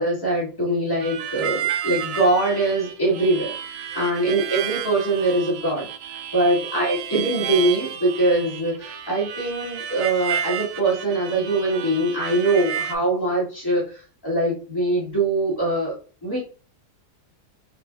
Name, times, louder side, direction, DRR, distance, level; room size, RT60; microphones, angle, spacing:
voice 1, 0.0-3.5 3.9-5.9 6.3-16.0 16.2-16.4, right 2 dB, 15° left, -6 dB, 1.8 m, -22 dB
Harmonica, 1.0-13.0, right 9 dB, 75° right, 1.1 m, -31 dB
4.3 x 4.3 x 2.4 m, 0.38 s
omnidirectional pair, 1.7 m